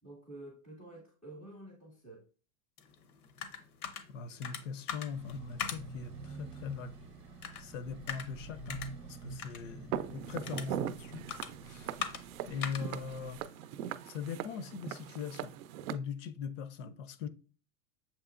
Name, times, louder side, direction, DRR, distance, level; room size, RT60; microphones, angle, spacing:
voice 1, 0.0-2.2, right 1 dB, 5° right, 0.3 m, -50 dB
sound 1, 2.8-14.4, left 8 dB, 85° left, 0.9 m, -45 dB
voice 2, 4.1-6.9 7.6-11.3 11.6-12.0 12.5-13.4 14.1-15.6 15.9-17.3, left 6 dB, 60° left, 0.6 m, -41 dB
sound 2, 5.1-13.4, right 3 dB, 25° right, 0.8 m, -48 dB
Walk footsteps, 9.9-15.9, right 11 dB, 75° right, 0.5 m, -40 dB
7.0 x 2.9 x 2.4 m
supercardioid pair, 170°, 42 cm